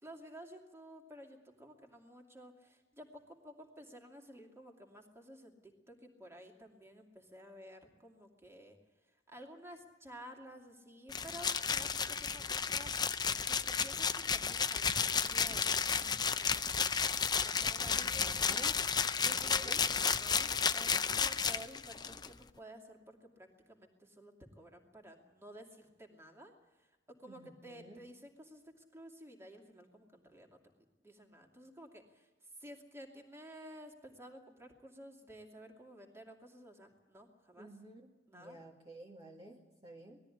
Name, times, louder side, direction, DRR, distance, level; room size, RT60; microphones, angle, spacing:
voice 1, 0.0-8.8 9.3-12.9 13.4-17.0 17.3-18.6 19.2-26.5 26.8-30.6 31.0-32.3 32.6-37.7 38.3-38.6, equal, 15° right, 2 dB, 2.6 m, -53 dB
sound 1, 11.1-22.3, left 6 dB, 25° left, 0.6 m, -32 dB
voice 2, 17.9-18.7 19.2-19.8 27.2-28.1 37.6-40.2, right 1 dB, 30° right, -3 dB, 1.9 m, -52 dB
20.5 x 13.5 x 10.0 m, 1.2 s
head